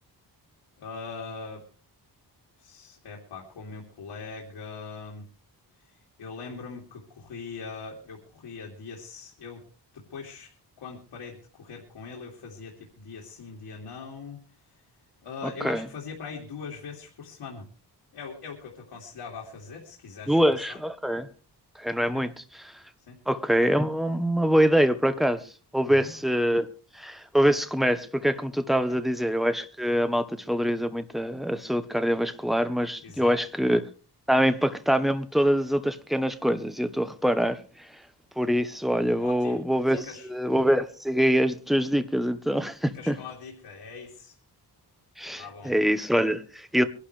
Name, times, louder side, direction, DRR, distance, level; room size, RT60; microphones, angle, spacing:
voice 1, 0.8-1.6 2.6-5.2 6.2-9.6 9.9-10.5 10.8-14.4 15.2-17.7 18.1-20.4 20.7-20.8 22.1-22.2 23.1-23.2 25.9-26.1 28.9-29.0 33.0-33.3 39.2-39.6 40.0-40.3 42.9-44.3 45.4-45.7, left 5 dB, 90° left, 3.0 m, -41 dB
voice 2, 15.4-15.8 20.3-21.3 21.7-22.3 22.6-22.8 23.3-26.7 26.9-33.9 34.3-38.0 38.4-43.2 45.2-46.9, equal, ahead, 1.1 m, -24 dB
23.0 x 12.0 x 3.3 m
wide cardioid pair, 120°, 41 cm